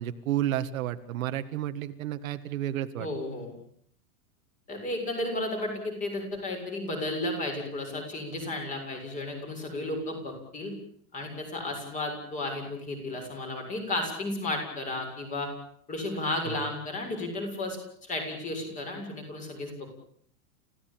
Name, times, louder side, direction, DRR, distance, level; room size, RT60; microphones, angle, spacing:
voice 1, 0.0-3.1 16.5-16.6, right 12 dB, 65° right, 9 dB, 1.8 m, -31 dB
voice 2, 3.0-3.5 4.7-10.7 11.1-15.5 15.9-19.9, left 2 dB, 15° left, 4 dB, 7.1 m, -33 dB
30.0 x 16.0 x 8.8 m, 0.65 s
supercardioid pair, 170°, 43 cm